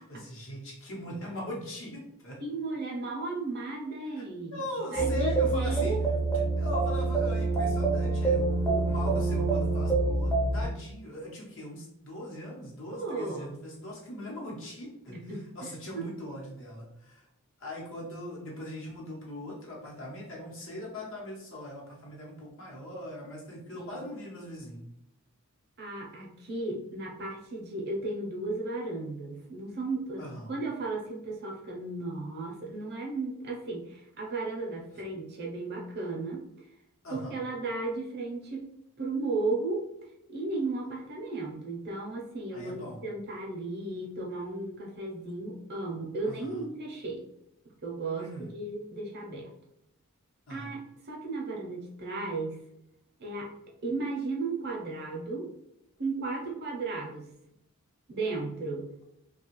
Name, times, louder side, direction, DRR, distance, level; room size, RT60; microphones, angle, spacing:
voice 1, 0.0-2.4 4.1-6.0 6.6-17.3 17.6-24.8 30.2-30.5 34.9-35.0 37.0-37.4 42.5-43.1 46.2-46.6 48.1-48.5 50.5-50.7, left 1 dB, 60° left, -3 dB, 0.9 m, -40 dB
voice 2, 2.4-4.6 4.9-6.0 12.9-13.5 15.1-16.0 23.7-24.0 25.8-36.4 37.1-38.6 39.0-39.8 40.3-47.2 47.8-48.3 48.5-49.5 50.5-50.8 51.1-52.6 53.2-53.5 53.8-55.5 56.0-57.3 58.1-58.9, right 3 dB, 45° right, 0 dB, 0.6 m, -35 dB
sound 1, 5.0-10.6, right 3 dB, 15° left, 0.6 m, -26 dB
2.8 x 2.3 x 3.0 m, 0.80 s
head